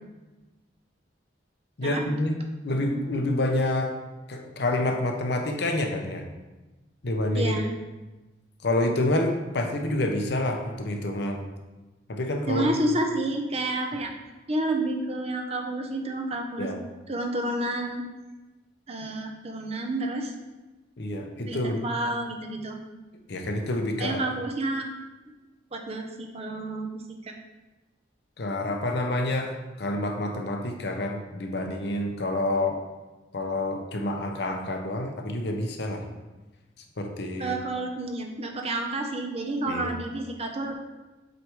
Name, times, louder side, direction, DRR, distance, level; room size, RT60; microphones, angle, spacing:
voice 1, 1.8-2.4 2.6-3.9 4.3-6.2 7.0-7.6 8.6-11.4 12.1-12.7 16.6-16.9 21.0-21.8 23.3-24.3 28.4-32.8 33.3-36.1 37.0-37.6 39.7-39.9, left 1 dB, 60° left, 4 dB, 0.7 m, -28 dB
voice 2, 7.3-7.7 12.5-14.1 14.5-16.7 17.1-18.0 18.9-20.3 21.5-22.8 24.0-24.8 25.2-25.3 25.7-27.3 37.4-40.7, right 1 dB, 30° right, 3 dB, 0.7 m, -30 dB
7.7 x 3.2 x 4.7 m, 1.1 s
head